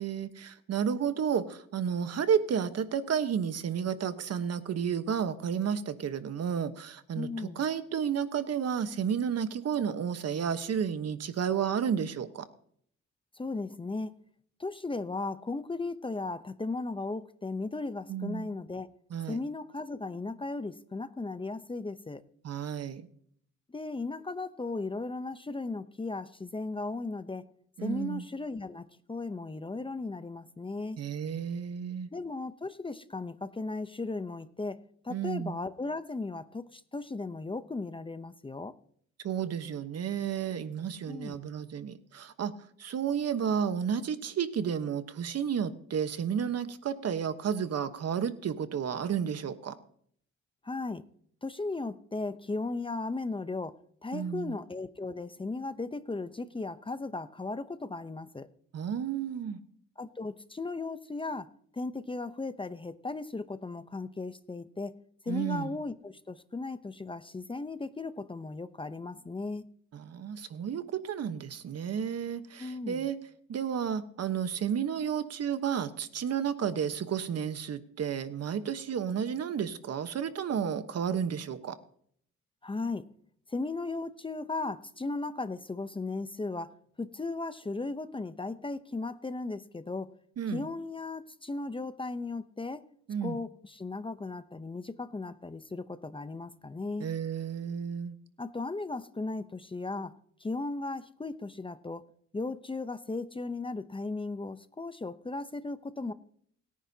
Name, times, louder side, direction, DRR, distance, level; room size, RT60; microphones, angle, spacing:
voice 1, 0.0-12.4 18.1-18.5 19.1-19.4 22.4-23.1 27.8-28.2 31.0-32.1 35.1-35.5 39.2-42.5 42.8-49.7 54.1-54.5 58.7-59.6 65.3-65.8 69.9-73.2 73.5-81.7 90.4-90.7 93.1-93.4 97.0-98.2, right 8 dB, 55° right, 10 dB, 1.2 m, -32 dB
voice 2, 7.1-7.6 13.3-14.1 14.6-18.9 19.3-22.2 23.7-27.5 27.8-31.0 32.1-34.8 35.0-38.7 41.1-41.5 50.6-51.0 51.4-53.8 54.0-58.5 60.0-61.5 61.7-64.9 65.2-69.6 72.6-73.1 82.6-83.1 83.5-90.1 90.5-92.8 93.2-97.1 98.4-100.1 100.4-102.0 102.3-106.1, left 3 dB, 15° left, 11 dB, 0.7 m, -36 dB
28.5 x 10.0 x 2.8 m, 0.64 s
cardioid pair, 90°, 30 cm